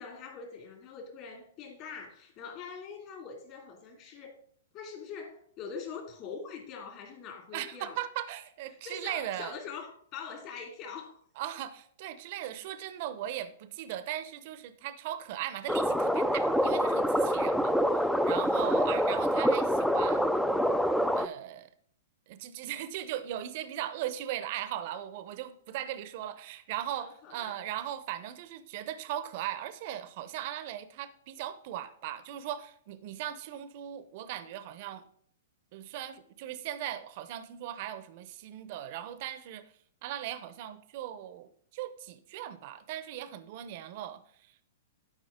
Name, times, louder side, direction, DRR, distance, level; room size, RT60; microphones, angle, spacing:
voice 1, 0.0-4.4 4.7-8.0 8.7-11.2 17.4-17.6 18.7-19.1 26.9-27.6, left 5 dB, 45° left, 1 dB, 2.5 m, -44 dB
voice 2, 7.5-9.6 11.4-20.3 21.1-21.7 22.3-35.0 35.7-39.7 40.0-44.6, right 12 dB, 50° right, 13 dB, 0.7 m, -38 dB
sound 1, 15.7-21.3, equal, ahead, 0.4 m, -26 dB
12.0 x 5.0 x 3.7 m, 0.62 s
hypercardioid pair, 125°, 0 cm